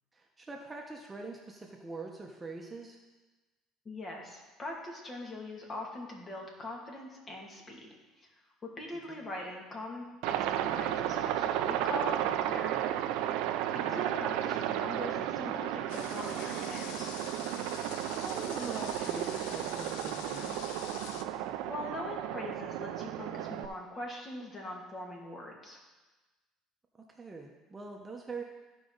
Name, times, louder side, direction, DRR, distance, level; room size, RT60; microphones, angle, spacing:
voice 1, 0.1-3.0 9.1-9.2 13.7-14.0 18.1-20.7 26.9-28.4, right 3 dB, 20° right, 1 dB, 1.1 m, -43 dB
voice 2, 3.8-7.8 8.2-8.3 8.8-12.9 13.7-17.1 21.7-25.8, left 2 dB, 35° left, -1 dB, 2.4 m, -42 dB
Aircraft, 10.2-23.7, right 11 dB, 80° right, 0.5 m, -33 dB
sound 1, 15.9-21.2, left 9 dB, 85° left, 0.5 m, -46 dB
14.5 x 5.0 x 4.0 m, 1.2 s
supercardioid pair, 95°, 0 cm